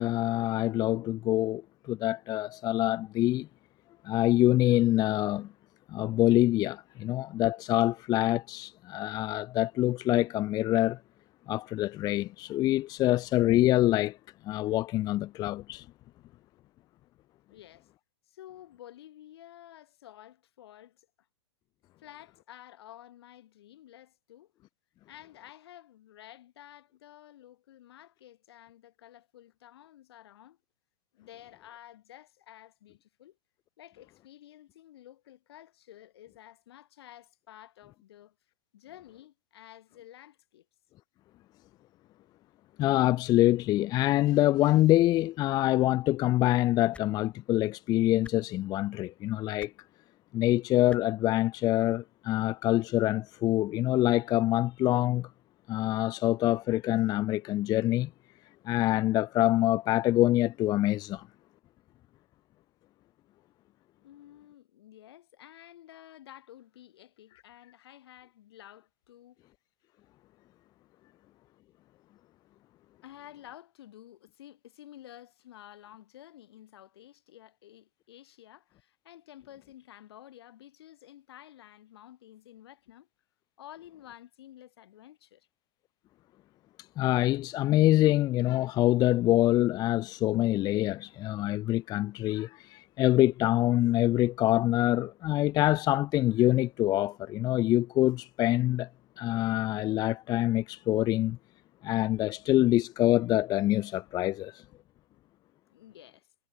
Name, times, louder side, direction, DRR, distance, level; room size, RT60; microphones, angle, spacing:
voice 1, 0.0-3.5 4.0-5.5 5.9-11.0 11.5-14.2 14.5-15.9 42.8-49.7 50.3-55.3 55.7-58.1 58.6-61.3 87.0-98.9 99.2-101.4 101.8-104.6, left 15 dB, 30° left, 0.4 m, -25 dB
voice 2, 17.5-17.9 18.3-21.1 22.0-24.5 25.1-30.6 31.1-33.4 33.8-38.4 38.7-40.7 64.0-69.4 71.1-71.2 73.0-83.1 83.6-85.5 105.7-106.3, left 12 dB, 65° left, 2.9 m, -52 dB
sound 1, 46.9-47.1 48.2-48.4 49.6-49.7 50.9-51.0 52.3-52.4, left 3 dB, 10° left, 1.1 m, -48 dB
hypercardioid pair, 110°, 14 cm